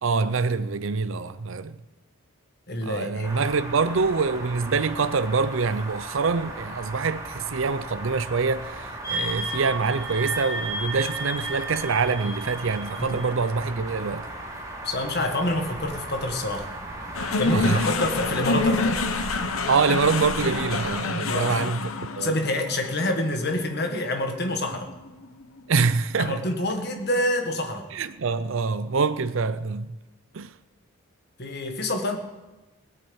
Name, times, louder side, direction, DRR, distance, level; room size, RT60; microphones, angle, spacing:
voice 1, 0.0-1.7 2.8-14.3 17.5-17.9 19.7-22.3 25.7-26.4 27.9-29.9 30.3-30.5, right 4 dB, 65° right, 0.5 m, -25 dB
voice 2, 2.7-3.3 13.0-13.2 14.8-16.7 17.4-19.0 21.3-21.6 22.2-24.9 26.2-27.9 31.4-32.2, left 1 dB, 50° left, 1.7 m, -27 dB
sound 1, 3.2-21.0, right 1 dB, 15° right, 2.8 m, -37 dB
sound 2, 9.0-13.5, right 2 dB, 15° left, 6.6 m, -33 dB
sound 3, 17.1-25.6, left 3 dB, 75° left, 1.0 m, -28 dB
18.0 x 8.4 x 7.1 m
head